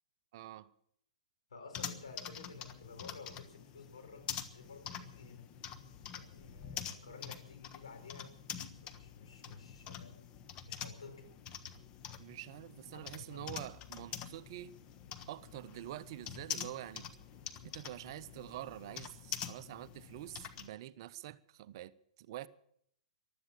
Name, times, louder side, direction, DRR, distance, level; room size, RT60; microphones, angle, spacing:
voice 1, 0.3-0.7 12.2-14.8 15.3-17.1 17.6-22.5, right 13 dB, 45° right, 0.6 m, -46 dB
voice 2, 1.5-5.4 6.1-8.3 8.7-10.2 10.7-11.2 12.9-13.5, left 4 dB, 70° left, 4.4 m, -52 dB
sound 1, 1.7-20.7, left 9 dB, 30° left, 1.2 m, -46 dB
15.5 x 12.0 x 7.0 m
figure-of-eight pair, 115°, 3 cm